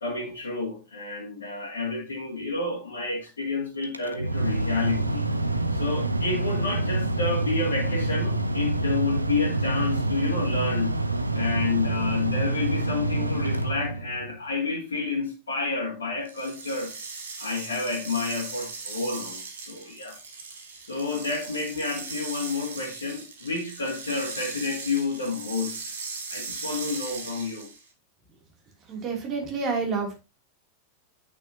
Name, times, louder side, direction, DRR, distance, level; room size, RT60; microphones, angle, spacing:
voice 1, 0.0-5.2 5.7-10.9 11.3-16.9 17.4-20.2 20.9-25.8 26.3-27.7, left 3 dB, 70° left, 2.2 m, -30 dB
Mechanical fan, 3.8-14.4, right 2 dB, 85° right, 0.7 m, -27 dB
sound 1, 16.2-27.9, right 4 dB, 65° right, 1.9 m, -38 dB
voice 2, 28.9-30.2, right 4 dB, 30° right, 3.0 m, -29 dB
9.0 x 6.0 x 2.9 m
figure-of-eight pair, 90°, 0 cm